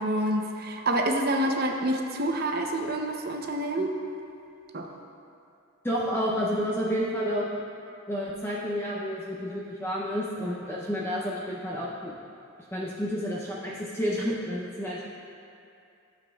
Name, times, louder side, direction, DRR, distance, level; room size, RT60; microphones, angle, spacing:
voice 1, 0.0-3.9 4.7-4.9, right 1 dB, 45° right, 2 dB, 0.7 m, -27 dB
voice 2, 5.8-7.6 8.1-12.1 12.7-15.0, equal, 10° left, -5 dB, 0.5 m, -30 dB
12.0 x 7.2 x 2.3 m, 2.6 s
head